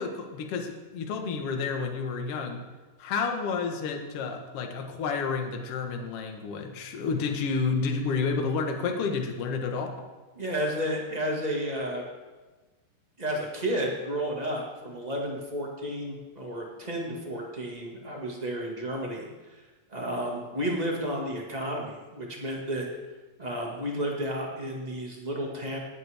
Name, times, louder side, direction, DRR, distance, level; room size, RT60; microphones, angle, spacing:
voice 1, 0.0-2.6 3.0-9.9, left 5 dB, 55° left, 3 dB, 1.8 m, -30 dB
voice 2, 10.3-12.0 13.2-19.6 19.9-22.9 23.4-25.8, equal, 30° right, -1 dB, 0.7 m, -32 dB
18.0 x 11.0 x 3.5 m, 1.2 s
omnidirectional pair, 4.1 m